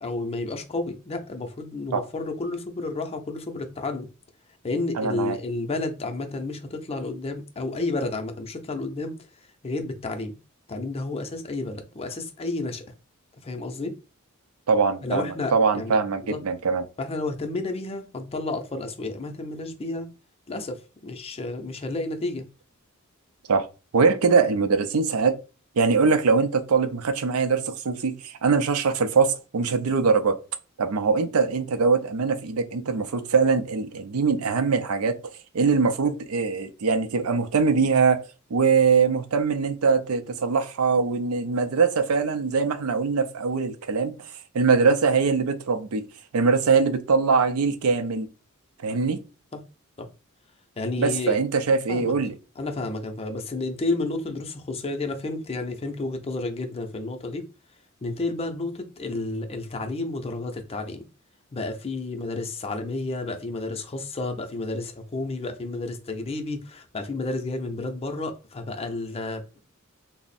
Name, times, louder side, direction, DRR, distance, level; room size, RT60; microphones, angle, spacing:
voice 1, 0.0-4.1 4.6-9.1 9.6-10.4 10.7-12.8 13.4-13.9 15.0-16.0 16.2-16.4 17.0-20.1 20.5-20.8 21.0-22.5 49.5-49.6 50.0-50.1 50.8-51.4 51.9-52.1 52.6-57.4 58.0-61.1 61.5-69.6, left 2 dB, 30° left, 0.5 m, -31 dB
voice 2, 4.9-5.4 14.7-15.3 15.5-16.8 23.5-23.7 23.9-25.4 25.8-30.4 30.8-35.2 35.5-38.2 38.5-44.1 44.5-46.0 46.3-48.3 48.8-49.2 51.0-52.3, right 5 dB, 85° right, 0.5 m, -22 dB
3.4 x 2.0 x 4.1 m
head